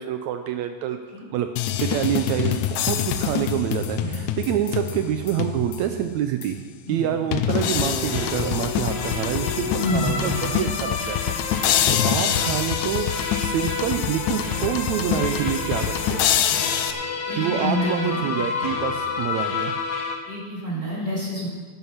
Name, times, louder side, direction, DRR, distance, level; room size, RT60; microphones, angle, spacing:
voice 1, 0.0-1.0 1.3-1.5 1.8-6.6 6.9-16.2 17.4-19.8, right 10 dB, 80° right, 7 dB, 1.7 m, -27 dB
sound 1, 1.6-6.0 6.4-6.5 7.3-16.9, left 10 dB, 80° left, 2.1 m, -26 dB
sound 2, 7.5-20.2, left 4 dB, 60° left, 2.3 m, -30 dB
voice 2, 9.8-10.4 17.2-18.3 20.2-21.5, equal, 20° right, -4 dB, 3.8 m, -28 dB
11.5 x 9.6 x 5.7 m, 1.5 s
omnidirectional pair, 3.6 m